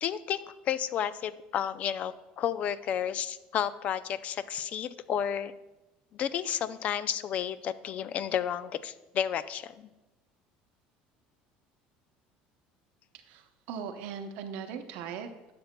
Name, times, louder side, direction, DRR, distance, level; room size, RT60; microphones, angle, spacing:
voice 1, 0.0-5.5 6.1-9.9, left 9 dB, 45° left, 15 dB, 0.4 m, -32 dB
voice 2, 13.1-15.5, right 7 dB, 75° right, 7 dB, 0.7 m, -39 dB
12.0 x 6.8 x 2.2 m, 1.0 s
cardioid pair, 130°, 3 cm